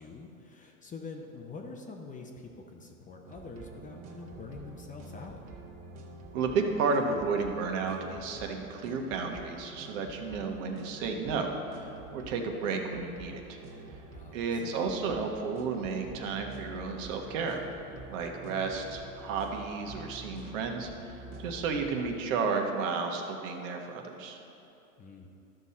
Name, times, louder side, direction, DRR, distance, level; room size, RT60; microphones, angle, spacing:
voice 1, 0.0-5.4 14.1-14.8 25.0-25.3, left 4 dB, 20° left, 2 dB, 0.7 m, -45 dB
sound 1, 3.2-22.1, right 3 dB, 40° right, 1.3 m, -47 dB
voice 2, 6.3-13.6 14.3-17.6 18.1-24.4, right 4 dB, 60° right, 3 dB, 1.3 m, -32 dB
13.0 x 5.8 x 4.2 m, 2.8 s
hypercardioid pair, 115°, 43 cm